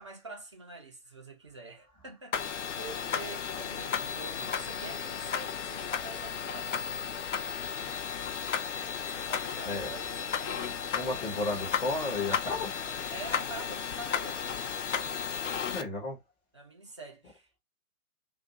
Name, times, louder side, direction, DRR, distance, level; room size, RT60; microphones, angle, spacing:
voice 1, 0.0-6.9 7.6-7.8 9.1-11.0 13.1-14.7 16.5-17.6, right 3 dB, 20° right, 0.4 m, -46 dB
sound 1, 2.3-15.8, left 7 dB, 55° left, 0.5 m, -34 dB
voice 2, 10.9-12.8 15.6-16.2, left 2 dB, 10° left, 0.8 m, -36 dB
2.6 x 2.4 x 3.7 m
figure-of-eight pair, 125°, 44 cm